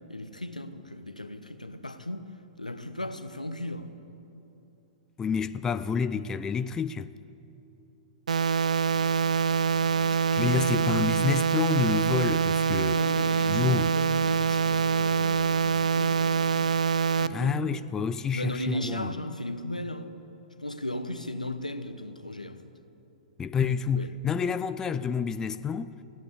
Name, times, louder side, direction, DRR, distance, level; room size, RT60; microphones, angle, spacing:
voice 1, 0.1-2.3 2.6-4.0 8.8-10.8 12.8-16.7 17.1-17.7 18.3-20.1 20.6-22.7 23.6-24.2, left 1 dB, 90° left, 0.8 m, -36 dB
voice 2, 5.2-7.1 10.3-13.0 13.5-13.9 17.3-19.1 23.4-25.9, left 6 dB, 15° left, 0.4 m, -28 dB
sound 1, 8.3-17.3, right 6 dB, 70° right, 0.5 m, -25 dB
15.5 x 9.3 x 8.6 m
figure-of-eight pair, 110°, 4 cm